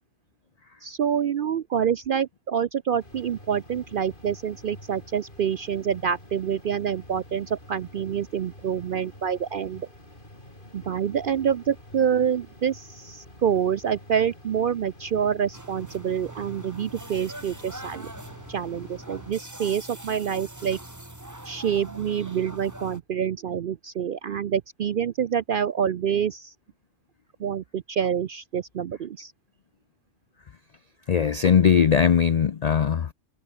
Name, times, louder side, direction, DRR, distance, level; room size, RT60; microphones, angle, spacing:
voice 1, 0.8-9.9 10.7-18.1 18.5-20.8 21.4-26.5 27.4-29.3, right 8 dB, 60° right, 0.5 m, -27 dB
sound 1, 3.0-19.3, left 1 dB, 40° left, 7.0 m, -48 dB
sound 2, 15.5-23.0, right 1 dB, 15° right, 2.2 m, -42 dB
voice 2, 31.1-33.1, left 7 dB, 70° left, 0.3 m, -20 dB
omnidirectional pair, 1.4 m